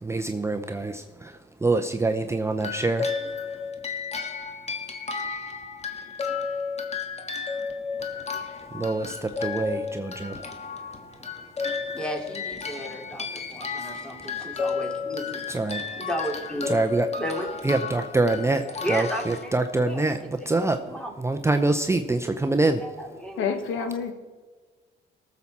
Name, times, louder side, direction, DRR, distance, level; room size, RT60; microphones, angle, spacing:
voice 1, 0.0-3.1 8.7-10.4 13.4-13.5 13.8-13.9 15.5-15.8 16.7-17.1 17.6-22.8, right 2 dB, 15° right, 6 dB, 0.6 m, -25 dB
sound 1, 2.6-20.0, left 5 dB, 35° left, 1.5 m, -33 dB
voice 2, 11.9-15.4 16.0-16.9 17.2-17.5 18.8-19.5 19.8-20.5 20.9-21.1 22.8-23.9, equal, 5° left, 2 dB, 2.6 m, -34 dB
voice 3, 23.4-24.1, left 6 dB, 85° left, 8 dB, 1.2 m, -28 dB
18.5 x 7.3 x 4.2 m, 1.4 s
cardioid pair, 90°, 20 cm